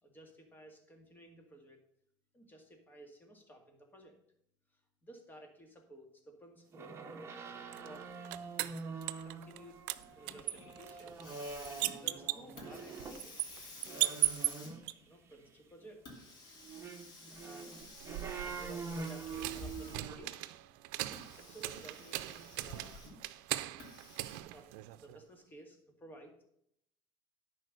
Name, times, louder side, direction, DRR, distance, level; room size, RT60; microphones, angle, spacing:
voice 1, 0.0-1.8 2.3-4.2 5.0-6.9 7.8-8.1 9.2-9.8 10.2-11.2 11.8-13.5 14.1-14.7 15.1-16.2 17.4-17.7 18.1-20.5 21.4-22.9 24.5-24.7 25.0-26.4, right 1 dB, 20° left, 3 dB, 2.0 m, -55 dB
sound 1, 6.7-13.2 13.8-15.1 16.6-20.2, right 5 dB, 25° right, 1.2 m, -45 dB
sound 2, 7.7-9.6 9.9-14.9 17.7-25.2, right 18 dB, 90° right, 0.5 m, -39 dB
Hiss, 10.0-20.3 21.0-23.3 23.8-24.4, left 2 dB, 45° left, 2.7 m, -52 dB
10.5 x 4.5 x 6.6 m, 0.72 s
cardioid pair, 135°, 10 cm